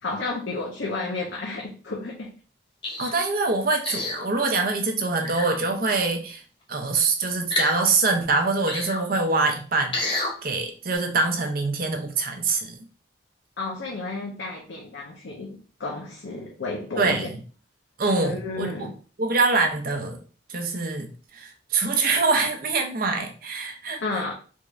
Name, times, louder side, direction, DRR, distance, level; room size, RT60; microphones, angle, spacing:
voice 1, 0.0-2.3 13.6-17.3 18.2-18.9 24.0-24.3, left 3 dB, 70° left, 0.6 m, -32 dB
sound 1, 2.8-3.2 3.8-4.3 5.2-5.6 7.5-7.9 8.7-9.0 9.9-10.3 10.9-11.0, left 2 dB, 25° left, 0.9 m, -28 dB
voice 2, 3.0-6.4 6.7-10.0 10.4-12.8 17.0-17.4 18.0-18.7 19.2-20.2 20.5-24.0, right 3 dB, 50° right, 0.6 m, -24 dB
3.5 x 2.5 x 3.1 m
head